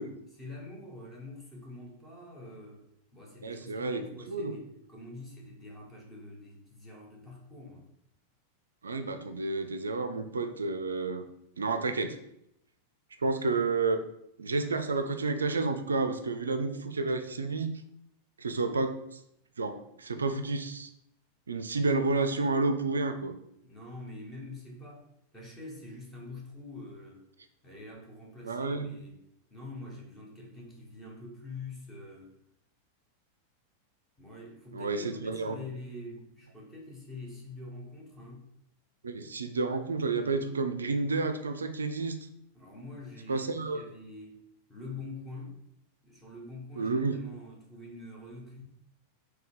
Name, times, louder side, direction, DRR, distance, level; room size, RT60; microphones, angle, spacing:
voice 1, 0.3-2.8 3.1-7.9 23.6-25.0 25.3-27.2 27.6-29.2 29.5-32.3 34.2-38.4 42.5-45.6 46.0-48.6, left 2 dB, 10° left, -2 dB, 1.4 m, -45 dB
voice 2, 3.4-4.6 8.8-11.2 11.6-12.2 13.2-14.0 14.4-17.7 18.4-19.0 19.6-20.9 21.5-23.3 28.4-28.9 34.7-35.6 39.0-42.2 43.3-43.8 46.8-47.2, right 3 dB, 75° right, 8 dB, 0.4 m, -30 dB
3.4 x 3.2 x 4.8 m, 0.78 s
figure-of-eight pair, 90°, 0 cm